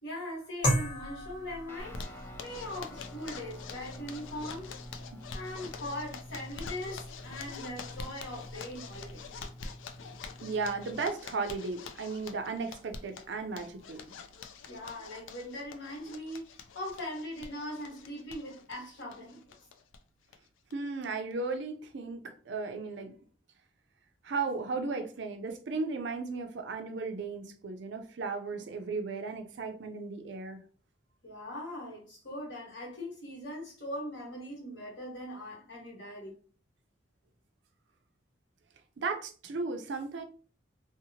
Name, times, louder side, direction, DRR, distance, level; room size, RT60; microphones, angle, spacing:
voice 1, 0.0-4.7 5.3-9.2 14.7-19.4 31.2-36.3, left 1 dB, 65° left, 1.3 m, -41 dB
sound 1, 0.6-9.5, equal, 40° left, 1.0 m, -39 dB
Guitar, 1.7-11.1, left 1 dB, 10° left, 0.4 m, -49 dB
Zipper (clothing), 1.8-20.0 20.3-20.4 20.7-20.8 21.1-21.6, left 4 dB, 85° left, 0.4 m, -46 dB
voice 2, 10.0-14.0 20.7-23.1 24.2-30.6 39.0-40.2, right 4 dB, 60° right, 0.4 m, -35 dB
2.7 x 2.1 x 2.7 m
head